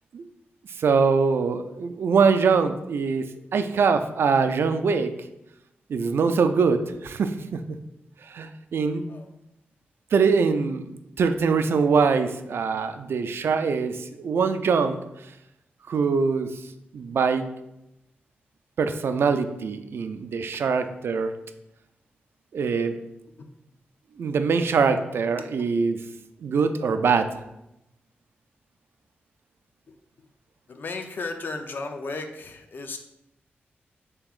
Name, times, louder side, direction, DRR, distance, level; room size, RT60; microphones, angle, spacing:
voice 1, 0.8-5.1 5.9-7.8 8.3-9.1 10.1-15.0 15.9-16.5 16.9-17.4 18.8-21.3 22.5-23.0 24.2-26.0 26.4-27.3, right 5 dB, 75° right, 9 dB, 0.4 m, -23 dB
voice 2, 30.7-33.0, left 3 dB, 55° left, 6 dB, 0.5 m, -34 dB
7.0 x 2.9 x 2.4 m, 0.87 s
wide cardioid pair, 100°, 4 cm